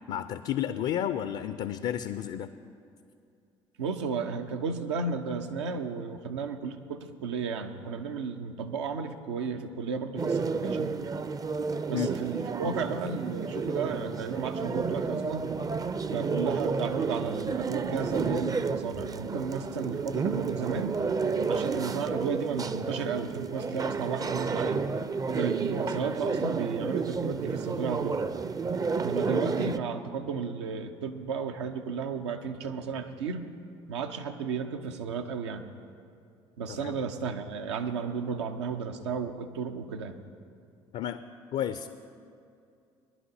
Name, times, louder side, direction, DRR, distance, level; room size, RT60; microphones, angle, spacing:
voice 1, 0.1-2.5 11.9-12.1 36.8-37.0 40.9-41.2 41.5-41.9, left 10 dB, 50° left, 11 dB, 0.4 m, -31 dB
voice 2, 3.8-11.1 11.9-15.5 16.1-21.0 21.5-24.8 25.3-28.2 29.0-33.5 33.9-35.6 36.6-40.2, right 5 dB, 80° right, 6 dB, 0.7 m, -33 dB
sound 1, 10.2-29.8, right 5 dB, 25° right, 0.5 m, -31 dB
20.5 x 11.0 x 2.8 m, 2.5 s
hypercardioid pair, 55°, 14 cm